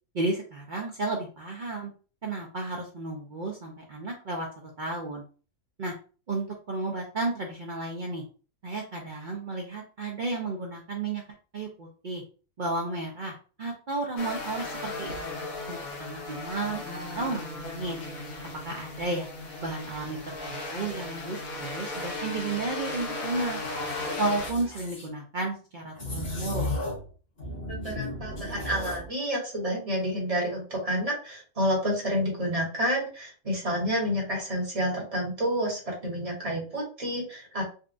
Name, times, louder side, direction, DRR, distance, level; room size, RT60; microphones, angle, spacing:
voice 1, 0.1-1.9 2.2-5.2 5.8-5.9 6.3-8.2 8.6-11.2 11.5-12.2 12.6-15.3 15.7-16.8 17.2-18.0 18.6-19.3 19.6-23.6 24.2-26.8, right 2 dB, 70° right, 0 dB, 0.4 m, -33 dB
sound 1, 14.2-24.5, left 2 dB, 70° left, 1.4 m, -36 dB
sound 2, 23.6-25.1 25.9-27.1 27.4-29.1, left 1 dB, 40° left, 1.3 m, -35 dB
voice 2, 27.7-37.6, equal, 25° right, -3 dB, 1.2 m, -29 dB
4.0 x 2.3 x 2.5 m, 0.37 s
omnidirectional pair, 1.5 m